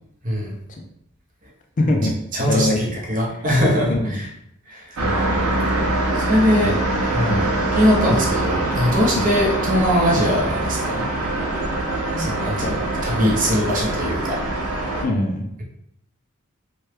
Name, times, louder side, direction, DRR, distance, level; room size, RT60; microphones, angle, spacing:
voice 1, 0.2-0.6 2.3-4.3 4.7-5.0 6.1-7.5 7.7-11.1 12.2-14.4 14.7-14.9, equal, 40° right, -2 dB, 0.8 m, -21 dB
voice 2, 1.8-2.2 2.5-2.8 3.3-3.4 3.9-4.2 5.0-5.6 6.6-6.8 7.3-7.5 9.2-9.3 12.1-12.3 12.5-13.4 15.0-15.5, left 1 dB, 40° left, 3 dB, 0.4 m, -24 dB
sound 1, 5.0-15.0, right 2 dB, 85° right, 0.7 m, -23 dB
3.0 x 2.2 x 3.3 m, 0.76 s
head